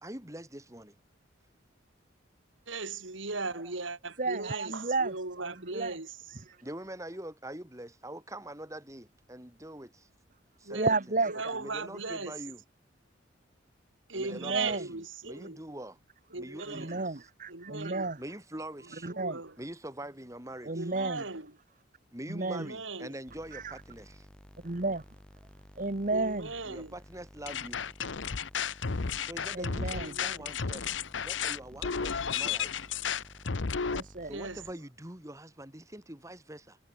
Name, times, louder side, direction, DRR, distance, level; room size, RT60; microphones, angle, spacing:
voice 1, 0.0-1.0 3.5-3.7 6.6-10.1 10.6-11.2 11.5-12.6 14.1-16.0 16.4-17.2 18.2-19.1 19.6-20.9 22.1-24.3 26.6-27.8 29.2-32.9 34.2-36.8, right 1 dB, 15° right, 3.6 m, -44 dB
voice 2, 2.7-6.1 10.7-10.9 11.3-12.3 14.1-15.6 16.3-17.0 17.5-18.1 19.1-19.6 20.7-21.5 22.5-23.1 26.1-26.9 29.9-30.5 34.3-34.6, right 3 dB, 75° right, 3.5 m, -38 dB
voice 3, 4.2-5.1 5.4-5.9 6.5-6.6 10.7-11.6 14.4-14.8 16.7-18.2 19.0-19.4 20.6-21.2 22.3-22.7 23.5-23.8 24.6-25.0 25.8-26.5 29.5-30.2 33.9-34.3, right 3 dB, 40° right, 1.3 m, -32 dB
sound 1, 23.3-34.7, equal, 5° left, 3.8 m, -54 dB
sound 2, 27.5-34.0, left 6 dB, 70° left, 0.9 m, -33 dB
head